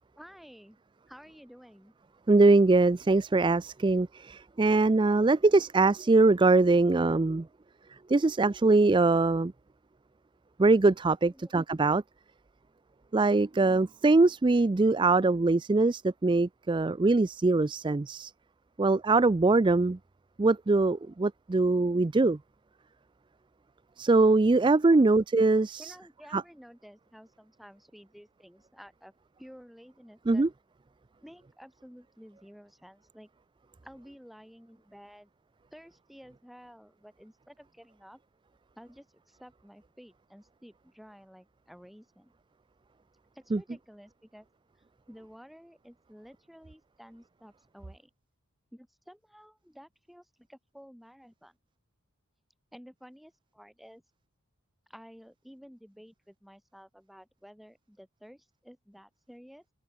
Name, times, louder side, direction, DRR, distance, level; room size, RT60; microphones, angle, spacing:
voice 1, 0.2-0.8 1.1-1.9 11.2-11.5 24.9-25.1 25.8-29.1 29.4-30.5 31.2-33.3 33.8-35.3 35.7-38.2 38.8-42.3 43.3-44.5 45.1-48.1 48.7-51.6 52.7-54.0 54.9-59.6, equal, ahead, 6.8 m, -52 dB
voice 2, 2.3-7.5 8.1-9.5 10.6-12.0 13.1-18.3 18.8-20.0 20.4-22.4 24.0-25.9 26.3-26.4 30.3-30.5 43.5-43.6, right 3 dB, 20° right, 0.4 m, -23 dB
head